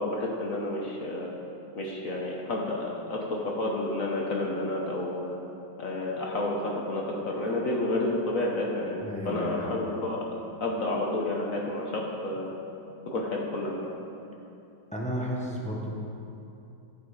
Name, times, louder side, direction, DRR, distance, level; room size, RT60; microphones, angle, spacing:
voice 1, 0.0-1.3 1.8-5.4 5.8-10.3 10.6-12.5 13.1-13.9, left 2 dB, 50° left, -1 dB, 1.2 m, -30 dB
voice 2, 9.0-9.7 14.9-16.0, equal, 10° left, -3 dB, 0.3 m, -33 dB
15.0 x 5.4 x 4.8 m, 2.7 s
omnidirectional pair, 2.2 m